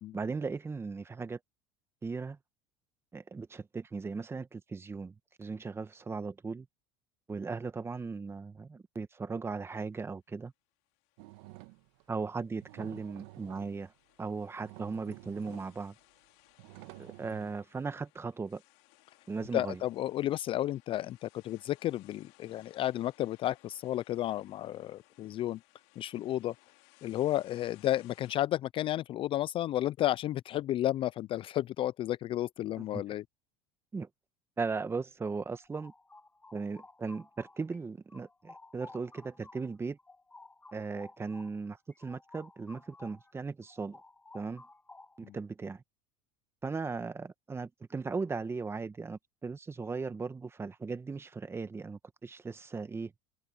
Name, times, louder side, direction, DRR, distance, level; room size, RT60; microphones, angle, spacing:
voice 1, 0.1-1.4 2.0-2.4 3.1-6.7 7.3-10.5 12.1-13.9 14.2-15.9 17.0-18.6 19.3-19.8 32.9-33.0 33.9-34.1 34.6-35.9 36.5-40.0 40.7-44.0 44.3-44.6 45.2-45.8 46.6-53.1, right 4 dB, 15° right, 1.4 m, -37 dB
sound 1, 11.0-28.4, left 26 dB, 70° left, 4.1 m, -64 dB
sound 2, 11.2-12.0 12.6-13.9 14.3-14.4 14.6-15.9 16.6-17.5, right 20 dB, 75° right, 1.4 m, -50 dB
voice 2, 19.5-25.6 26.0-26.5 27.0-33.2 45.2-45.4, left 13 dB, 40° left, 0.4 m, -32 dB
sound 3, 35.5-37.8 38.1-43.3 43.6-45.4, left 2 dB, 10° left, 1.4 m, -54 dB
supercardioid pair, 110°, 14 cm